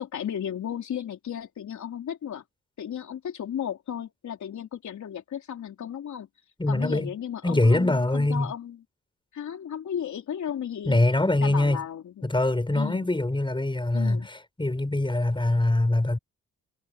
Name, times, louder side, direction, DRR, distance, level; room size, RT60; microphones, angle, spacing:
voice 1, 0.0-2.4 2.8-6.3 6.7-8.8 9.3-11.0 11.4-12.3 12.7-13.1 13.9-14.3, left 9 dB, 75° left, 3.8 m, -34 dB
voice 2, 6.6-7.1 7.4-8.5 10.9-11.8 12.2-16.2, left 2 dB, 15° left, 7.1 m, -23 dB
cardioid pair, 70°, 29 cm